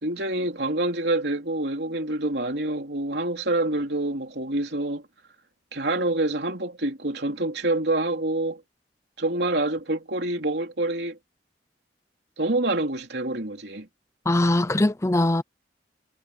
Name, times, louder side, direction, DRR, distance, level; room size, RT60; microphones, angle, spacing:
voice 1, 0.0-5.0 5.7-8.6 9.2-11.2 12.4-13.9, right 2 dB, 65° right, 3.6 m, -26 dB
voice 2, 14.3-15.4, left 1 dB, 15° left, 0.5 m, -21 dB
head